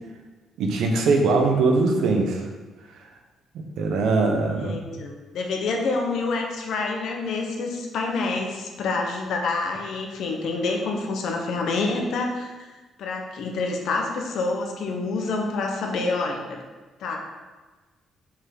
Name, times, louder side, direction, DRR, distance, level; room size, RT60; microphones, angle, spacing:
voice 1, 0.6-2.4 3.8-5.0, right 3 dB, 80° right, 2 dB, 1.1 m, -21 dB
voice 2, 4.5-12.5 13.0-16.6 17.0-17.2, left 3 dB, 75° left, 1 dB, 1.2 m, -27 dB
6.4 x 3.8 x 6.1 m, 1.3 s
cardioid pair, 90°, 0 cm